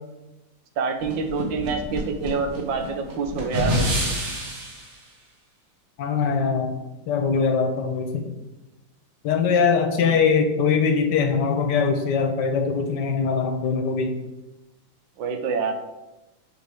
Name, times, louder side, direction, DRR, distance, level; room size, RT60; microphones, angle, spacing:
voice 1, 0.8-4.0 15.2-15.7, right 5 dB, 90° right, 5 dB, 1.5 m, -27 dB
sound 1, 1.0-4.9, equal, 45° right, 1.4 m, -27 dB
voice 2, 6.0-6.8 7.1-8.3 9.2-14.1, left 5 dB, 70° left, 5 dB, 1.3 m, -22 dB
6.4 x 5.4 x 3.5 m, 1.0 s
omnidirectional pair, 2.0 m